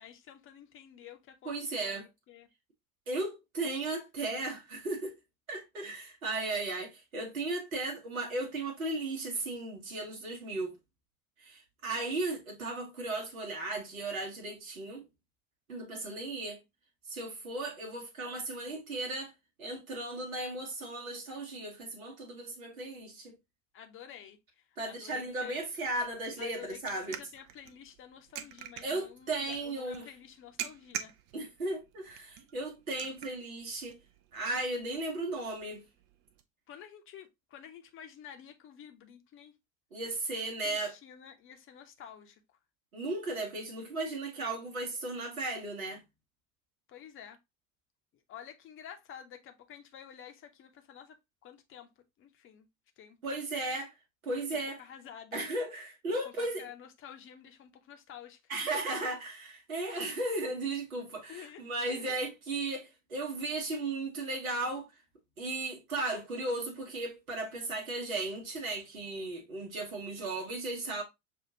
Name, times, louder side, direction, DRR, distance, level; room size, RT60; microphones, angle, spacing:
voice 1, 0.0-2.5 5.8-5.9 23.7-25.6 26.4-26.8 27.1-31.1 36.7-39.6 40.6-42.4 46.9-47.4 48.3-51.2 51.4-51.9 52.2-52.7 53.0-53.4 54.5-55.4 56.1-58.4 61.3-61.6 61.9-62.2, left 9 dB, 30° left, 0.7 m, -50 dB
voice 2, 1.4-2.1 3.1-5.2 5.5-10.8 11.4-15.0 15.7-16.6 17.1-19.3 19.6-23.3 24.8-27.2 28.8-30.1 31.3-34.0 34.3-35.8 39.9-40.9 42.9-46.0 53.2-53.9 54.2-54.9 55.3-56.7 58.5-64.9 65.4-71.0, right 2 dB, 75° right, 1.1 m, -36 dB
sound 1, 25.1-36.4, right 9 dB, 45° right, 0.6 m, -47 dB
6.0 x 2.4 x 2.7 m
figure-of-eight pair, 70°, 42 cm